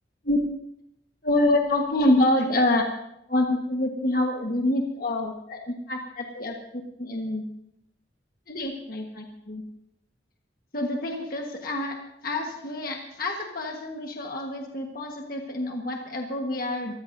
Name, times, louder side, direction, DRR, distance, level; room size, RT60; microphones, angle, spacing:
voice 1, 1.2-2.9 3.3-7.4 8.5-9.6 10.7-17.0, left 1 dB, 50° left, 1 dB, 1.5 m, -27 dB
23.5 x 15.0 x 2.7 m, 0.79 s
head